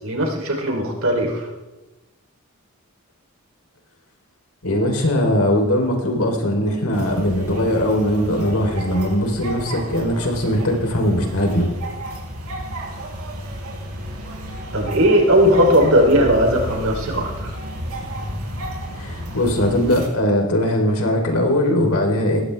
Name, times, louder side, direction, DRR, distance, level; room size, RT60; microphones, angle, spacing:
voice 1, 0.0-1.5 14.7-17.5, equal, 70° right, 2 dB, 3.3 m, -17 dB
voice 2, 4.6-11.7 19.0-22.4, left 1 dB, 80° left, 2 dB, 3.5 m, -20 dB
sound 1, 6.9-20.0, equal, 90° right, 4.8 m, -32 dB
19.5 x 15.5 x 3.4 m, 1.1 s
head